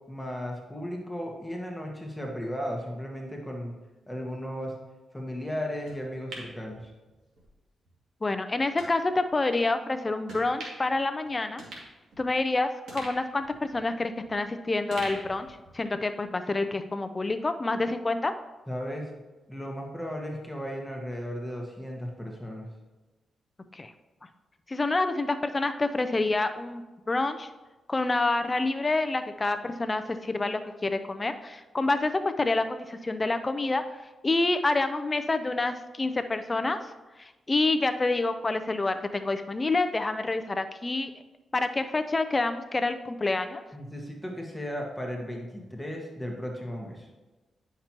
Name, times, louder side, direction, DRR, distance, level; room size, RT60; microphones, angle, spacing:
voice 1, 0.1-3.7 4.1-4.7 5.1-6.9 18.7-19.1 19.5-22.7 43.7-47.1, equal, 5° left, 0 dB, 1.4 m, -35 dB
sound 1, 5.9-7.5 7.9-8.0 8.8-8.9 9.5-9.7 10.3-10.9 11.2-11.3 11.6-12.5 12.9-14.5 14.9-16.1 16.4-16.5, right 2 dB, 80° right, 2.1 m, -44 dB
voice 2, 8.2-11.6 12.2-15.5 15.7-18.3 23.7-23.9 24.7-27.5 27.9-33.8 34.2-36.8 37.2-41.1 41.5-43.6, left 2 dB, 25° left, 9 dB, 0.5 m, -27 dB
10.0 x 5.9 x 2.9 m, 1.2 s
cardioid pair, 80°, 0 cm